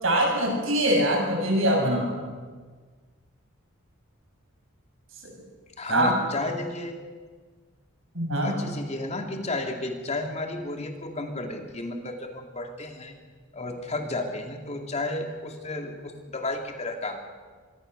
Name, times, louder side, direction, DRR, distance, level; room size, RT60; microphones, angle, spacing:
voice 1, 0.0-2.1 5.9-6.1 8.1-8.6, right 1 dB, 70° right, 1 dB, 7.2 m, -23 dB
voice 2, 5.8-7.0 8.3-13.2 13.5-17.3, left 2 dB, 30° left, 3 dB, 2.5 m, -32 dB
25.0 x 22.0 x 6.8 m, 1.5 s
head